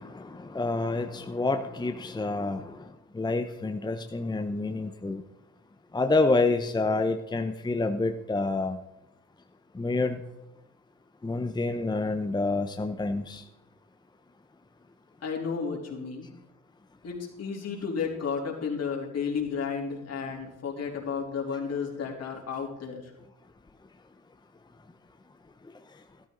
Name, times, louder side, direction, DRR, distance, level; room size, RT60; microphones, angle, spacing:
voice 1, 0.0-5.2 5.9-8.8 9.7-10.2 11.2-13.4 25.6-26.0, left 3 dB, 15° left, 6 dB, 0.8 m, -28 dB
voice 2, 15.2-16.3 17.0-23.1, left 6 dB, 55° left, 0 dB, 3.4 m, -32 dB
13.5 x 12.5 x 3.9 m, 0.93 s
cardioid pair, 90°, 30 cm